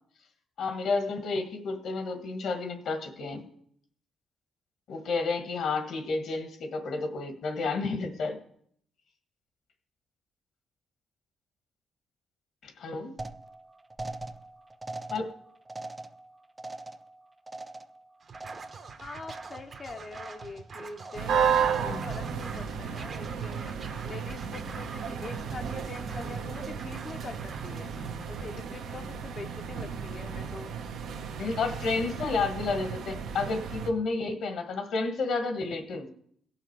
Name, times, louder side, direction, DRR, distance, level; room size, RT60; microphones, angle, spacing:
voice 1, 0.6-3.5 4.9-8.4 12.6-13.1 15.1-15.2 21.8-22.0 31.4-36.1, left 3 dB, 70° left, 6 dB, 1.4 m, -31 dB
sound 1, 13.2-19.0 19.2-19.8 20.1-20.7 21.0-21.5 21.9-22.4, right 2 dB, 15° right, 0.5 m, -43 dB
Scratching (performance technique), 18.2-28.5, right 5 dB, 45° right, 1.0 m, -45 dB
voice 2, 19.0-23.7 24.0-27.9 28.3-30.7, left 3 dB, 35° left, 4 dB, 0.6 m, -44 dB
sound 2, 21.1-33.9, right 7 dB, 80° right, 1.0 m, -33 dB
16.5 x 5.8 x 4.6 m, 0.65 s
cardioid pair, 90°, 0 cm